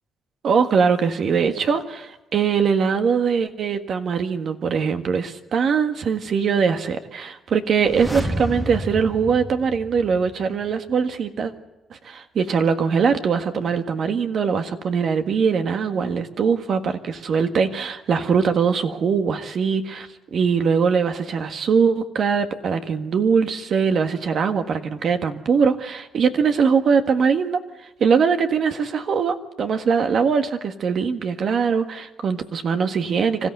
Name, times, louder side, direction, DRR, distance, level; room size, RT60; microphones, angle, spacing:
voice 1, 0.4-11.5 11.9-27.6 28.0-33.5, right 6 dB, 60° right, 7 dB, 1.6 m, -21 dB
sound 1, 7.7-10.6 10.9-11.0, equal, 5° right, 1.4 m, -30 dB
26.0 x 14.5 x 8.1 m, 1.0 s
cardioid pair, 85°, 0 cm